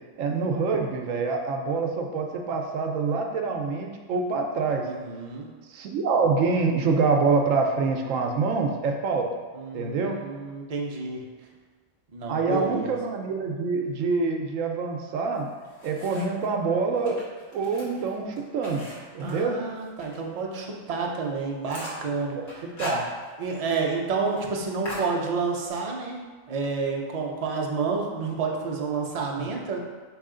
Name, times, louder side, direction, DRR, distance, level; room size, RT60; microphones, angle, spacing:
voice 1, 0.2-4.9 5.7-9.3 9.7-10.2 12.3-15.5 15.8-17.2 17.5-18.9 19.1-19.5 22.4-22.5 22.8-23.0 29.4-29.5, right 4 dB, 75° right, 2 dB, 0.9 m, -26 dB
voice 2, 4.8-5.5 9.5-11.2 12.1-13.0 19.2-22.7 23.4-26.2 26.5-29.8, right 4 dB, 45° right, -1 dB, 0.5 m, -29 dB
sound 1, 15.3-16.5 16.9-20.2 20.5-20.6 21.0-21.1 21.4-22.1 22.5-23.6 23.8-23.9 24.2-24.5 24.8-25.7, left 1 dB, 55° left, 1.5 m, -39 dB
4.8 x 2.9 x 3.7 m, 1.4 s
omnidirectional pair, 1.4 m